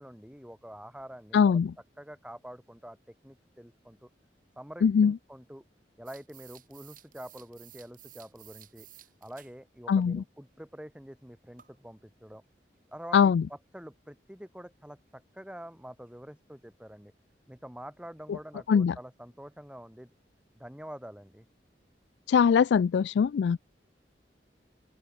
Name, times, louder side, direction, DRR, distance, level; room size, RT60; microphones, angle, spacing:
voice 1, 0.0-1.6 2.0-3.0 3.2-4.1 4.6-5.6 6.0-8.9 9.2-12.4 12.9-17.1 17.5-20.1 20.5-21.5, equal, 5° right, 3.2 m, -46 dB
voice 2, 1.3-1.7 4.8-5.1 9.9-10.2 13.1-13.4 18.7-18.9 22.3-23.6, left 6 dB, 75° left, 0.3 m, -22 dB
sound 1, 6.1-9.5 9.9-10.0 11.6-11.8 12.9-13.0 16.1-16.2 16.4-16.5 17.1-17.2 17.6-17.7 18.2-18.3, right 13 dB, 50° right, 3.6 m, -54 dB
open air
head